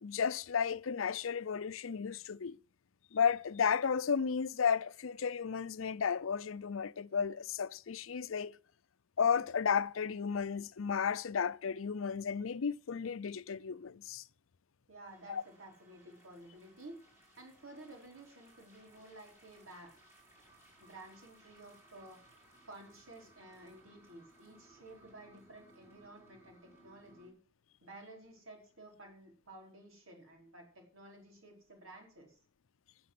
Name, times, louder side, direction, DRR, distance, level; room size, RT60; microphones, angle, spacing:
voice 1, 0.0-2.6 3.1-8.6 9.2-14.2 15.3-15.4, left 6 dB, 80° left, 0.5 m, -33 dB
voice 2, 14.9-17.0 17.4-19.9 20.8-22.2 22.7-27.3 27.8-32.4, right 2 dB, 85° right, 4.7 m, -53 dB
sound 1, 15.0-27.3, right 2 dB, 10° right, 4.5 m, -63 dB
13.5 x 6.9 x 7.6 m
head